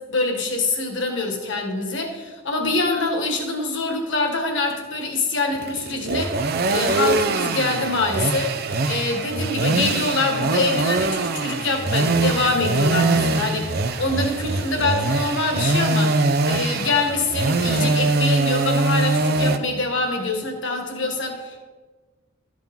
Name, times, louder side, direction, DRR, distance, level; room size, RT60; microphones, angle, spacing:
voice 1, 0.0-21.6, left 3 dB, 60° left, 2 dB, 1.6 m, -25 dB
sound 1, 5.5-19.6, right 3 dB, 50° right, 0.5 m, -22 dB
13.0 x 7.6 x 3.6 m, 1.3 s
head